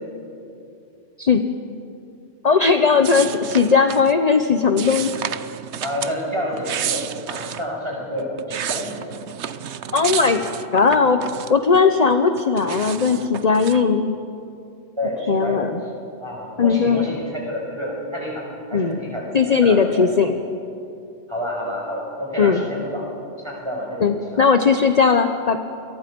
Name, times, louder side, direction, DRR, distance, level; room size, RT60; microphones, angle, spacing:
voice 1, 2.4-5.3 9.9-10.4 10.7-11.2 11.5-14.2 15.3-15.8 16.6-17.1 18.7-19.0 19.3-20.3 22.4-22.6 24.0-25.6, left 5 dB, 35° left, 7 dB, 0.9 m, -18 dB
folheando livro, 3.0-4.1 4.8-6.2 6.5-7.7 8.2-11.8 12.1-13.8, right 9 dB, 70° right, 1.0 m, -31 dB
voice 2, 5.8-9.0 15.0-15.7 16.2-19.3 19.6-20.1 21.3-23.1 23.4-24.6, equal, 25° right, -3 dB, 6.7 m, -29 dB
29.0 x 23.0 x 5.3 m, 2.7 s
omnidirectional pair, 1.2 m